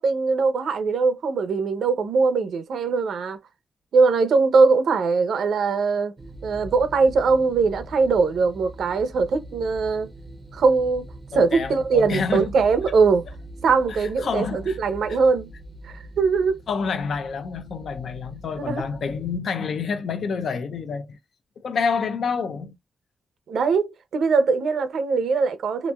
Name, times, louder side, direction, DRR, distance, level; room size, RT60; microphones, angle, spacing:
voice 1, 0.0-3.4 3.9-6.2 6.4-10.1 10.5-11.1 11.3-13.2 13.6-15.5 15.8-16.6 18.6-19.0 23.5-25.9, right 4 dB, 90° right, 0.5 m, -21 dB
sound 1, 6.2-19.4, right 1 dB, 20° right, 0.5 m, -42 dB
voice 2, 11.3-12.5 12.9-13.0 13.9-14.8 16.7-21.2 21.6-22.8, left 5 dB, 70° left, 0.5 m, -28 dB
3.0 x 2.5 x 2.2 m
wide cardioid pair, 125°, 0 cm